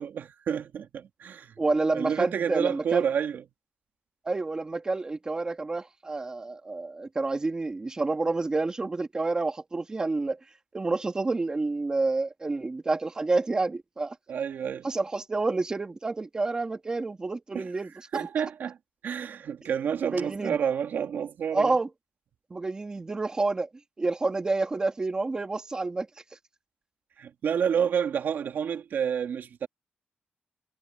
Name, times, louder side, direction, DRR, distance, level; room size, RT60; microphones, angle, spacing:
voice 1, 0.0-1.5 1.9-3.4 14.3-14.9 17.5-17.7 18.1-18.8 19.0-21.8 27.2-29.7, right 7 dB, 65° right, 2.3 m, -29 dB
voice 2, 1.6-3.0 4.2-10.4 10.7-14.2 14.8-18.3 20.0-20.6 21.5-21.9 22.5-23.7 24.0-26.1, right 3 dB, 20° right, 2.1 m, -29 dB
wide cardioid pair, 155°, 4 cm